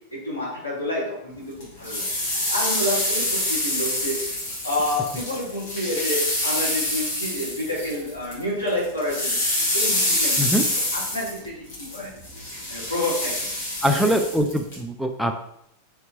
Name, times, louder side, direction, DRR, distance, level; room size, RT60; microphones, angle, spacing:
voice 1, 0.1-2.1 2.5-4.2 4.6-9.5 9.7-10.6 10.9-11.5 11.9-12.1 12.7-13.5 13.9-14.2, left 1 dB, 80° left, -6 dB, 1.5 m, -28 dB
sound 1, 1.6-8.4 8.7-14.8, left 1 dB, 50° left, 1.5 m, -26 dB
voice 2, 13.8-15.3, equal, ahead, 4 dB, 0.3 m, -22 dB
3.3 x 2.8 x 3.9 m, 0.73 s
figure-of-eight pair, 90°, 0 cm